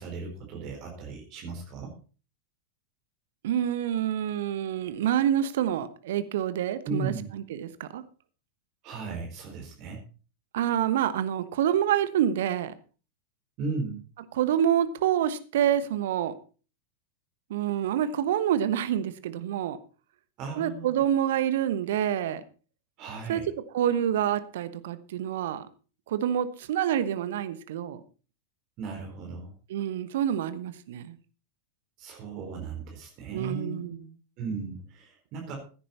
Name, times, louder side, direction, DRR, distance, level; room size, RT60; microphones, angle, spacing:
voice 1, 0.0-1.9 6.9-7.4 8.8-10.0 13.6-14.0 20.4-21.0 23.0-23.5 28.8-29.5 32.0-33.9 34.4-35.6, right 4 dB, 40° right, 1 dB, 4.2 m, -36 dB
voice 2, 3.4-8.0 10.5-12.7 14.3-16.3 17.5-19.8 20.6-22.4 23.3-23.4 23.7-25.7 26.1-28.0 29.7-31.2 33.3-34.1, right 10 dB, 55° right, 13 dB, 1.2 m, -27 dB
16.0 x 10.0 x 4.3 m, 0.36 s
figure-of-eight pair, 90°, 0 cm